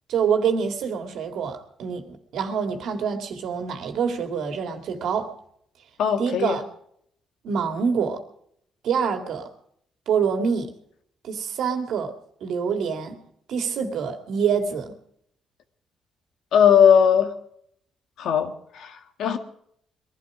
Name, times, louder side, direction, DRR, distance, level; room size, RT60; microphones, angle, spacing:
voice 1, 0.1-5.3 6.2-6.6 7.4-8.2 8.8-9.5 10.1-10.7 11.2-12.1 12.4-13.2 13.5-14.9, right 6 dB, 75° right, 2.3 m, -26 dB
voice 2, 6.0-6.6 16.5-17.3 18.2-19.4, left 8 dB, 75° left, 1.9 m, -19 dB
22.0 x 12.5 x 5.0 m
cardioid pair, 90°, 0 cm